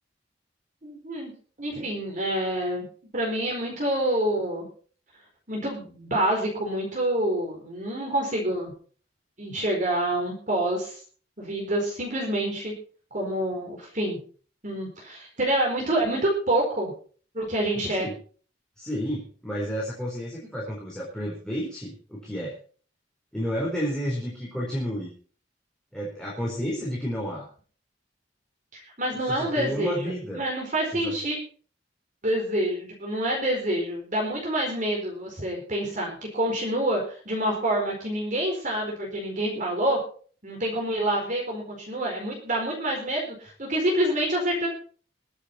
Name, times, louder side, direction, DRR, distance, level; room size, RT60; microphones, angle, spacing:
voice 1, 0.8-1.3 1.6-2.9 3.1-4.7 5.5-8.7 9.4-11.0 11.4-12.7 13.1-14.2 14.6-16.9 17.3-18.1 28.7-31.4 32.2-40.0 40.4-44.7, right 1 dB, 45° right, -1 dB, 4.6 m, -27 dB
voice 2, 18.8-22.5 23.3-25.1 25.9-27.5 29.2-30.4 30.9-31.1, equal, 5° left, -4 dB, 4.0 m, -31 dB
22.0 x 8.3 x 4.3 m, 0.42 s
head